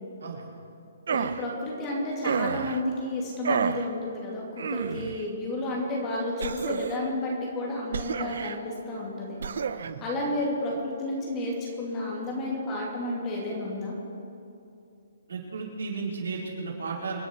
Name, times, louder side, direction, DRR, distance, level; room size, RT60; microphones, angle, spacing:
voice 1, 1.1-4.4 4.7-9.4 10.0-13.9, left 1 dB, 15° left, -3 dB, 2.6 m, -31 dB
sound 1, 1.1-1.4 2.2-2.8 3.4-3.9 4.6-5.2 6.4-7.1 7.9-8.6 9.4-9.9, right 6 dB, 60° right, 0.7 m, -30 dB
voice 2, 15.3-17.2, right 4 dB, 90° right, -3 dB, 4.3 m, -34 dB
26.5 x 10.5 x 4.6 m, 2.7 s
hypercardioid pair, 175°, 0 cm